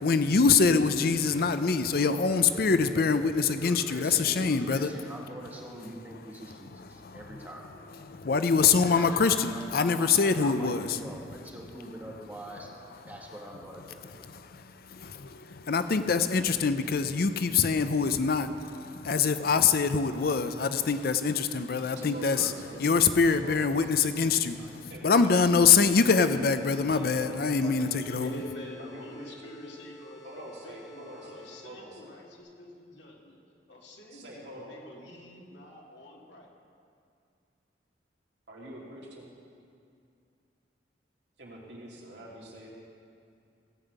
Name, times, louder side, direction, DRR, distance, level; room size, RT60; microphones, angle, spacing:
voice 1, 0.0-4.9 6.8-7.3 8.0-11.0 14.2-22.5 22.8-28.3, left 5 dB, 55° left, 10 dB, 0.5 m, -25 dB
voice 2, 1.3-1.8 2.2-7.7 8.8-12.7 13.1-14.0 22.4-22.5 24.6-24.7, equal, 10° right, -2 dB, 1.7 m, -44 dB
voice 3, 22.0-22.8 23.3-23.8 24.9-25.3 26.8-27.9 28.8-29.5 30.2-32.1 34.1-34.8 38.5-39.3 41.4-42.7, right 1 dB, 75° right, -4 dB, 2.8 m, -45 dB
sound 1, 25.9-31.9, left 3 dB, 25° left, 2.1 m, -51 dB
voice 4, 28.2-33.4 33.7-36.5, left 1 dB, 85° left, -1 dB, 2.2 m, -46 dB
16.5 x 5.6 x 8.1 m, 2.4 s
head